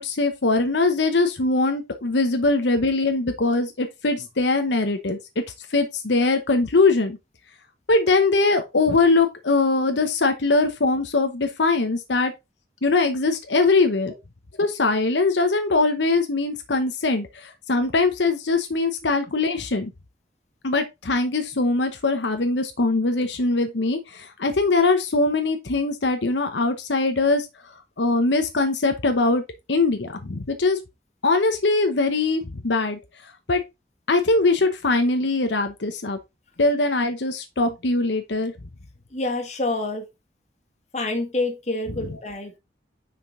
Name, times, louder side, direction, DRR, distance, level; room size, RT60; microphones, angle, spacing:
voice 1, 0.0-5.2 5.7-7.2 7.9-12.3 12.8-14.1 14.6-19.9 20.6-27.5 28.0-29.4 29.7-30.8 31.2-33.0 33.5-33.6 34.1-36.2 36.6-38.5, left 3 dB, 90° left, 0.9 m, -21 dB
voice 2, 39.1-40.1 40.9-42.6, left 2 dB, 40° left, 1.8 m, -27 dB
5.9 x 5.2 x 3.7 m
head